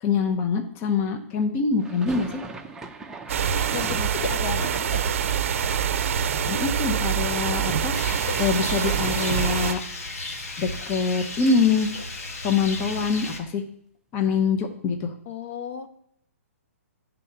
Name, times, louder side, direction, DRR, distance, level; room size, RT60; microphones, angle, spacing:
voice 1, 0.0-2.4 6.5-8.0 8.4-9.8 10.6-11.9 12.4-13.6 14.1-15.1, left 5 dB, 30° left, 5 dB, 0.8 m, -24 dB
sound 1, 1.8-7.7 8.0-8.8 9.1-9.2 9.5-11.6, right 3 dB, 5° right, 0.6 m, -42 dB
sound 2, 3.3-9.7, right 7 dB, 60° right, 0.5 m, -25 dB
voice 2, 3.7-5.1 15.3-15.9, left 6 dB, 60° left, 8 dB, 0.9 m, -33 dB
Rain, 7.9-13.4, left 2 dB, 80° left, 1.3 m, -34 dB
8.9 x 3.8 x 5.8 m, 0.69 s
hypercardioid pair, 135°, 8 cm